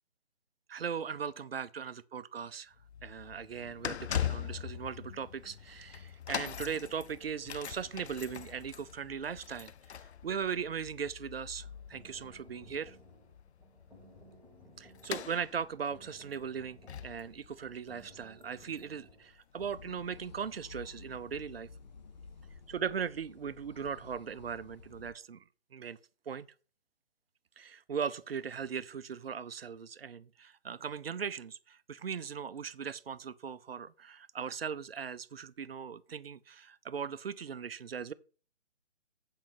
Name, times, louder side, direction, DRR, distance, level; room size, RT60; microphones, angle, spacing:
voice 1, 0.7-2.7 3.0-13.0 14.8-21.7 22.7-25.4 25.7-26.0 26.3-26.5 27.6-38.1, right 7 dB, 60° right, 0.6 m, -39 dB
sound 1, 2.8-19.7 20.4-20.5, left 9 dB, 70° left, 0.5 m, -42 dB
sound 2, 11.6-19.3, equal, ahead, 1.3 m, -59 dB
sound 3, 19.6-25.1, left 4 dB, 40° left, 0.8 m, -52 dB
8.6 x 5.3 x 5.8 m
figure-of-eight pair, 145°, 34 cm